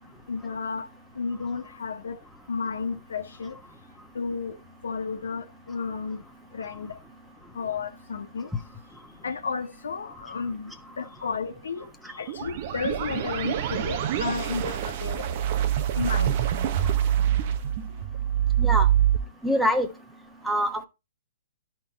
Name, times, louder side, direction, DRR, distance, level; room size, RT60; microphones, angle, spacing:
voice 1, 0.3-0.9 1.1-2.2 2.5-3.6 4.1-6.2 6.5-7.0 7.5-8.5 9.2-15.3 15.9-16.5, left 5 dB, 75° left, 1.4 m, -33 dB
sound 1, 12.3-19.2, right 10 dB, 45° right, 1.0 m, -25 dB
voice 2, 19.4-19.9 20.4-20.8, equal, 5° right, 1.2 m, -24 dB
12.0 x 4.5 x 4.1 m
hypercardioid pair, 125°, 0 cm